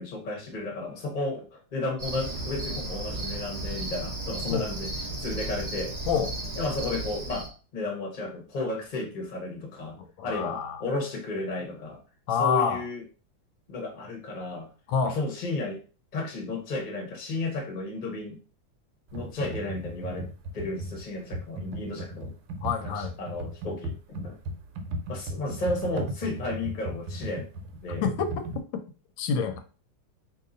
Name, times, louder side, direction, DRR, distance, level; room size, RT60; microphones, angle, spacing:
voice 1, 0.0-4.9 5.2-6.0 6.6-12.0 12.4-13.0 13.7-14.7 15.0-15.8 16.1-18.4 19.1-22.3 22.8-24.4 25.1-27.5 27.8-28.1, left 2 dB, 35° left, 1 dB, 0.8 m, -33 dB
Cricket, 2.0-7.5, right 2 dB, 55° right, 0.4 m, -34 dB
voice 2, 10.2-10.8 12.3-12.8 14.9-15.2 22.6-23.2 28.0-28.8 29.2-29.6, left 6 dB, 90° left, 8 dB, 1.3 m, -27 dB
Computer keyboard, 19.1-28.6, right 1 dB, 75° right, 1.3 m, -36 dB
2.8 x 2.7 x 3.7 m, 0.36 s
omnidirectional pair, 2.0 m